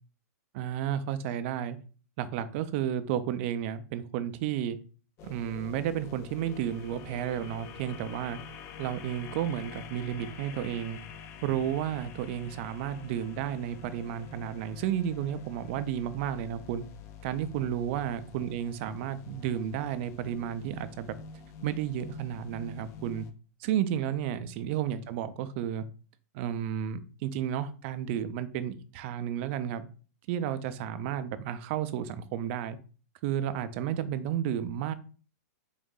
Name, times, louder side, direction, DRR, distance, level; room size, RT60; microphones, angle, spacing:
voice 1, 0.5-1.8 2.2-4.8 5.2-8.4 8.8-11.0 11.4-16.8 17.2-21.1 21.6-23.3 23.6-25.8 26.3-29.9 30.3-32.8 33.2-34.9, right 10 dB, 45° right, 12 dB, 0.4 m, -32 dB
sound 1, 5.2-23.3, left 6 dB, 30° left, 0.4 m, -47 dB
4.0 x 2.6 x 3.7 m, 0.38 s
hypercardioid pair, 140°, 9 cm